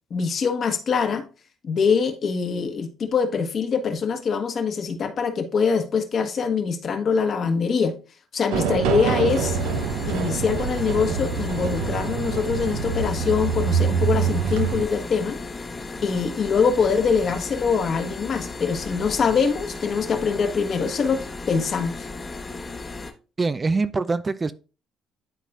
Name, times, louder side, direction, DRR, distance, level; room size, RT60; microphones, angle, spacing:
voice 1, 0.1-1.3 1.6-7.9 8.3-9.6 10.1-15.4 16.0-22.1, left 5 dB, 50° left, 1.3 m, -23 dB
sound 1, 8.5-14.8, right 6 dB, 90° right, 0.6 m, -25 dB
sound 2, 9.3-23.1, left 3 dB, 25° left, 1.0 m, -35 dB
voice 2, 23.4-24.5, right 3 dB, 30° right, 0.4 m, -24 dB
11.5 x 4.1 x 2.4 m
supercardioid pair, 75°, 0 cm